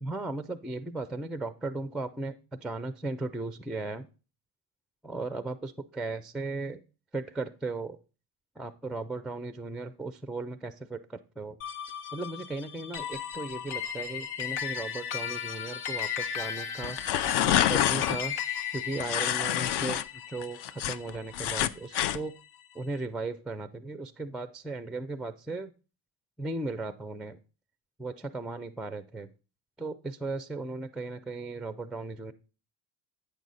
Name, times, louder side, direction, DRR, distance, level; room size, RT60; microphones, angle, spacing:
voice 1, 0.0-4.1 5.0-6.8 7.1-8.0 8.6-11.6 12.1-17.0 17.4-18.4 18.7-22.4 22.7-25.7 26.4-27.4 28.0-29.3 29.8-32.3, right 2 dB, ahead, 11 dB, 0.3 m, -36 dB
sound 1, 11.6-22.2, left 8 dB, 80° left, 1.0 m, -37 dB
sound 2, 16.8-18.2 19.0-20.0 20.4-22.2, left 11 dB, 60° left, 0.6 m, -27 dB
8.4 x 6.2 x 4.0 m, 0.34 s
supercardioid pair, 85°, 48 cm